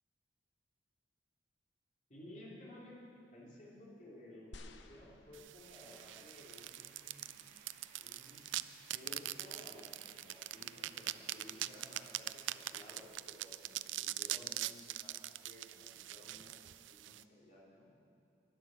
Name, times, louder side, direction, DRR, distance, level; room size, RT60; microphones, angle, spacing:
voice 1, 2.1-7.3 8.0-8.6 8.9-17.9, left 1 dB, 40° left, -5 dB, 3.3 m, -56 dB
sound 1, 4.5-6.0 6.8-6.9, left 2 dB, 85° left, 0.8 m, -54 dB
sound 2, 5.3-17.2, right 15 dB, 90° right, 0.3 m, -43 dB
sound 3, 5.6-13.1, right 2 dB, 40° right, 3.0 m, -64 dB
11.5 x 11.0 x 7.7 m, 2.6 s
head